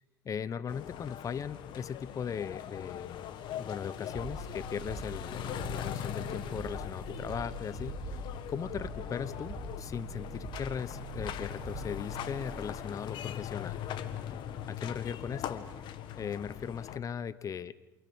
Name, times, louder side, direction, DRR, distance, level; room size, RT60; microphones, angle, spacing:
voice 1, 0.2-3.2 3.6-13.8 14.7-15.7 16.2-17.7, left 7 dB, 35° left, 17 dB, 1.0 m, -38 dB
sound 1, 0.7-17.0, left 10 dB, 55° left, 1.8 m, -41 dB
sound 2, 4.1-13.2, right 2 dB, 35° right, 5.6 m, -43 dB
29.0 x 28.5 x 5.5 m, 0.97 s
hypercardioid pair, 70°, 9 cm